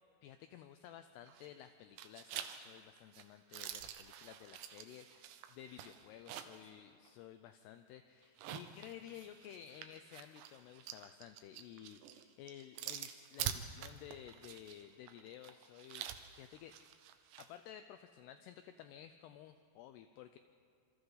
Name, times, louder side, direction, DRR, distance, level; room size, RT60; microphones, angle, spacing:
voice 1, 0.2-16.1 16.4-16.8 17.4-20.4, left 10 dB, 80° left, 9 dB, 2.4 m, -54 dB
sound 1, 1.3-1.7 2.0-6.7 7.1-7.2 8.2-17.5, right 10 dB, 80° right, 3.0 m, -47 dB
27.0 x 27.0 x 4.0 m, 2.3 s
omnidirectional pair, 5.3 m